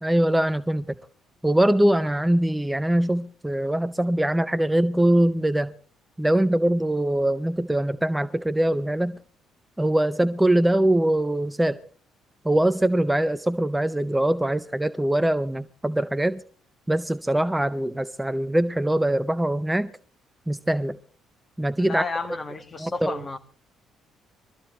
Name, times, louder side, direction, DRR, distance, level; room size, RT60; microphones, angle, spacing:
voice 1, 0.0-1.0 1.4-5.7 6.2-9.2 9.8-11.8 12.4-16.4 16.9-19.9 20.5-21.0 21.6-22.0 22.3-22.4 22.8-23.3, right 1 dB, 10° right, 0.6 m, -22 dB
voice 2, 21.8-23.4, left 3 dB, 30° left, 1.6 m, -31 dB
22.5 x 13.5 x 3.2 m
figure-of-eight pair, 45°, 0 cm